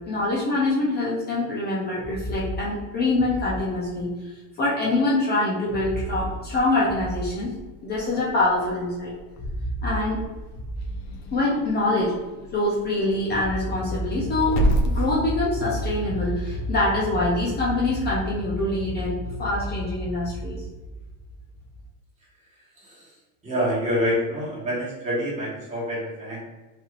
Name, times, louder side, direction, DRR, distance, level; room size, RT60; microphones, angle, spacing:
voice 1, 0.1-4.1 4.6-7.5 7.8-9.1 9.8-10.2 11.3-12.2 12.5-20.6, left 2 dB, 25° left, -5 dB, 0.4 m, -24 dB
Growling / Hiss, 6.1-16.9, equal, 60° left, 0.7 m, -32 dB
voice 2, 22.8-23.1 23.4-26.4, equal, 15° right, -7 dB, 1.2 m, -27 dB
3.2 x 2.7 x 2.4 m, 1.2 s
supercardioid pair, 145°, 46 cm